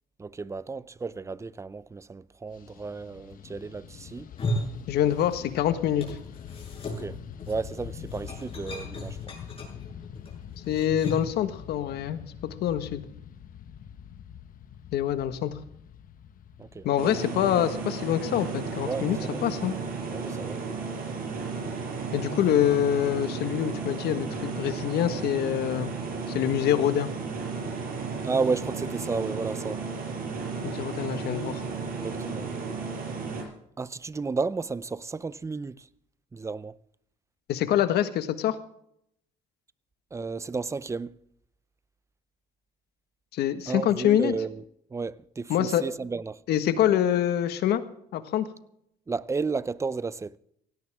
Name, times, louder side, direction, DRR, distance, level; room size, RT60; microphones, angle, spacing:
voice 1, 0.2-4.3 6.9-7.2 7.5-9.2 16.6-16.9 18.8-19.4 20.1-20.6 28.2-29.8 31.9-32.5 33.8-35.9 36.3-36.8 40.1-41.2 43.7-44.6 44.9-46.4 49.1-50.4, right 4 dB, 15° right, 0.6 m, -32 dB
Fixed-wing aircraft airplane, 2.5-19.9, left 8 dB, 55° left, 1.3 m, -45 dB
sound 1, 4.2-5.6 5.8-11.4, left 1 dB, 35° left, 7.7 m, -36 dB
voice 2, 4.9-6.2 10.7-12.2 12.6-13.0 14.9-15.5 16.8-19.2 19.4-19.7 22.1-25.9 26.3-27.1 30.6-31.6 37.5-38.6 43.3-44.3 45.5-45.8 46.5-47.8 48.1-48.5, left 11 dB, 75° left, 1.6 m, -25 dB
sound 2, 17.0-33.4, right 4 dB, 60° right, 5.8 m, -34 dB
17.0 x 17.0 x 3.6 m
cardioid pair, 110°, 17 cm